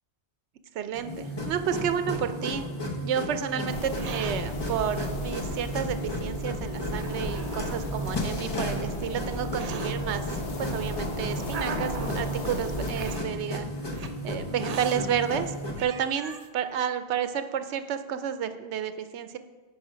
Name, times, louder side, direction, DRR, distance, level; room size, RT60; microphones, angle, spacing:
voice 1, 0.7-2.7 3.0-10.2 10.6-13.7 14.0-15.5 15.8-19.4, right 8 dB, 80° right, 10 dB, 0.9 m, -31 dB
sound 1, 0.9-15.8, left 1 dB, 25° left, 0.9 m, -34 dB
Hiss, 1.2-2.8 3.8-4.4 5.3-5.4 6.2-6.3 6.9-7.9 8.7-10.0 10.8-12.3 12.9-13.3 13.9-14.1 14.6-15.0 15.5-15.6 15.8-16.5, right 6 dB, 55° right, 0.4 m, -40 dB
sound 2, 3.7-13.2, left 1 dB, 60° left, 1.3 m, -36 dB
9.3 x 4.9 x 5.0 m, 1.3 s
omnidirectional pair, 1.2 m